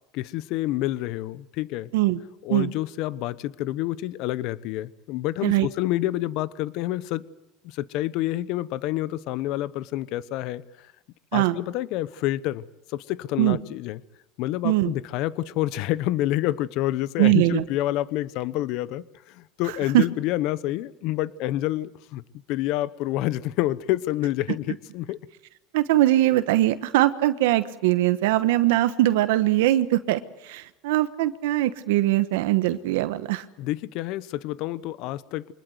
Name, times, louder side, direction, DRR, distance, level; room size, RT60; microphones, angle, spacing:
voice 1, 0.1-1.9 2.4-7.2 7.6-10.6 11.3-12.6 12.9-14.0 14.4-22.2 22.5-25.2 33.6-35.5, left 15 dB, 60° left, 1.0 m, -28 dB
voice 2, 17.2-17.6 19.9-20.0 25.7-33.4, right 15 dB, 80° right, 1.2 m, -21 dB
24.5 x 20.5 x 8.0 m
supercardioid pair, 120°, 0 cm